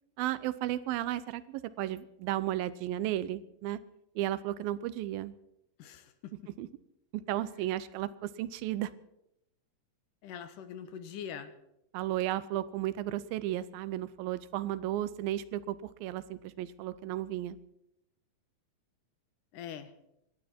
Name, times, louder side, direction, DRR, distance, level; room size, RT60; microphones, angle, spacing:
voice 1, 0.2-3.8 4.2-5.3 6.6-6.7 7.1-8.9 11.9-17.6, right 13 dB, 90° right, 15 dB, 2.5 m, -34 dB
voice 2, 5.8-6.3 10.2-11.5 19.5-19.9, left 8 dB, 70° left, 10 dB, 2.5 m, -43 dB
26.0 x 11.5 x 4.4 m, 0.81 s
omnidirectional pair, 4.1 m